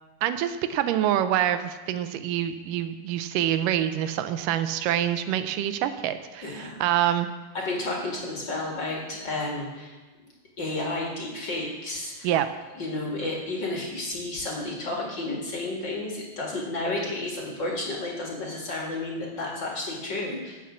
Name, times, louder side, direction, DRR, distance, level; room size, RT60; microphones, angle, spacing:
voice 1, 0.2-7.3 12.2-12.5, right 11 dB, 90° right, 10 dB, 2.2 m, -26 dB
voice 2, 6.4-7.1 7.5-10.0 10.6-12.3 12.7-20.6, left 2 dB, 40° left, -2 dB, 2.2 m, -32 dB
16.0 x 5.8 x 6.3 m, 1.2 s
omnidirectional pair, 3.8 m